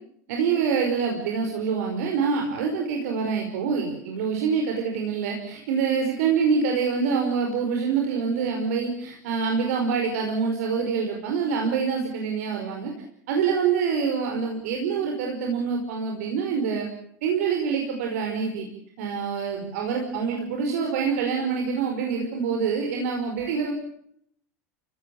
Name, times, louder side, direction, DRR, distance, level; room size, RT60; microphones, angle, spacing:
voice 1, 0.3-12.9 13.3-16.9 17.2-18.7 19.0-23.7, right 6 dB, 70° right, 2 dB, 5.3 m, -26 dB
29.0 x 17.0 x 8.8 m, 0.71 s
hypercardioid pair, 90°, 9 cm